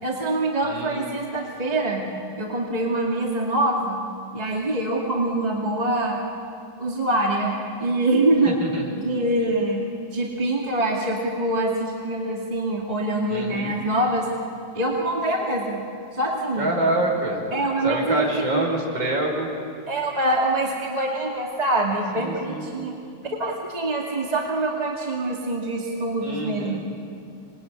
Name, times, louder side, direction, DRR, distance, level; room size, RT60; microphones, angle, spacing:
voice 1, 0.0-2.1 2.4-4.0 4.3-6.2 6.8-8.6 8.9-9.8 10.1-14.3 14.7-15.8 16.1-16.7 17.5-18.6 19.9-22.9 23.4-26.9, right 2 dB, 20° right, -1 dB, 2.3 m, -24 dB
voice 2, 0.6-1.1 8.6-8.9 13.3-13.7 16.6-17.4 17.8-19.5 22.2-22.7 26.2-26.8, right 1 dB, 80° right, -1 dB, 5.3 m, -26 dB
25.5 x 21.5 x 9.7 m, 2.4 s
omnidirectional pair, 2.0 m